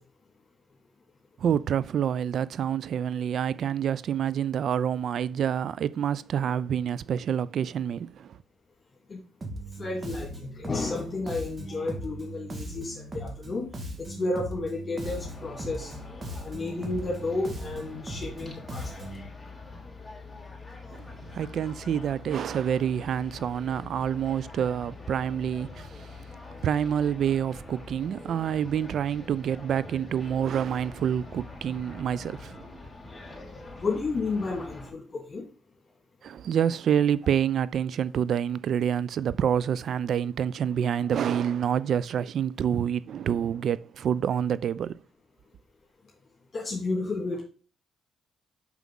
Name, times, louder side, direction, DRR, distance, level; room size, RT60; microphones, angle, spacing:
voice 1, 1.4-8.4 20.9-26.2 26.6-32.6 36.2-44.9, right 8 dB, 65° right, 0.3 m, -27 dB
Bass guitar, 9.4-19.3, right 1 dB, 40° right, 1.6 m, -39 dB
voice 2, 9.8-13.7 14.0-15.9 16.4-19.1 33.8-35.4 46.5-47.4, left 3 dB, 40° left, 2.0 m, -32 dB
sound 1, 15.0-34.9, left 3 dB, 20° left, 3.1 m, -44 dB
6.0 x 5.6 x 3.8 m
supercardioid pair, 60°, 0 cm